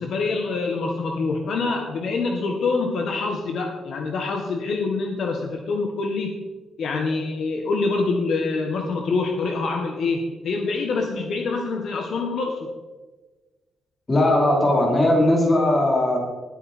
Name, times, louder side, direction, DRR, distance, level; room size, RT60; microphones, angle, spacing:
voice 1, 0.0-6.4 6.8-12.7, left 3 dB, 60° left, 2 dB, 1.6 m, -25 dB
voice 2, 14.1-16.2, left 1 dB, 20° left, -2 dB, 3.9 m, -18 dB
20.0 x 8.6 x 4.5 m, 1.2 s
wide cardioid pair, 170°, 0 cm